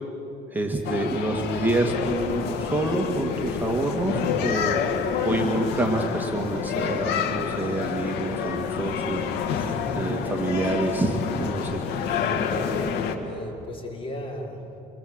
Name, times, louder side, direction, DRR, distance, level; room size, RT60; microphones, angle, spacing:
voice 1, 0.5-4.9 5.2-9.3 10.0-11.6, right 2 dB, 10° right, 1 dB, 2.0 m, -27 dB
sound 1, 0.8-13.2, left 6 dB, 90° left, 2.1 m, -28 dB
voice 2, 9.5-10.1 11.4-11.7 12.1-12.7 13.2-14.6, left 1 dB, 30° left, -1 dB, 5.3 m, -37 dB
27.5 x 23.5 x 8.0 m, 2.8 s
cardioid pair, 110°, 17 cm